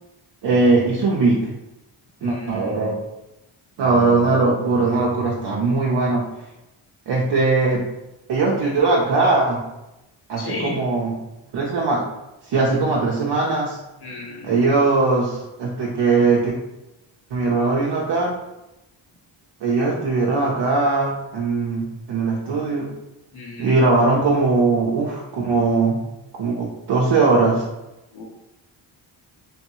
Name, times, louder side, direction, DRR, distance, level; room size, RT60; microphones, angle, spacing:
voice 1, 0.4-1.4 2.2-3.0 3.8-6.3 7.1-7.8 8.3-9.6 10.3-11.1 11.5-12.1 12.4-13.8 14.4-16.5 17.3-18.3 19.6-22.9 23.6-26.0 26.4-27.7, right 3 dB, 55° right, -4 dB, 0.7 m, -20 dB
voice 2, 2.2-2.8 10.4-10.8 14.0-14.5 23.3-23.8 28.1-28.2, left 2 dB, 50° left, -2 dB, 1.2 m, -33 dB
3.3 x 2.2 x 3.0 m, 0.94 s
cardioid pair, 60°, 49 cm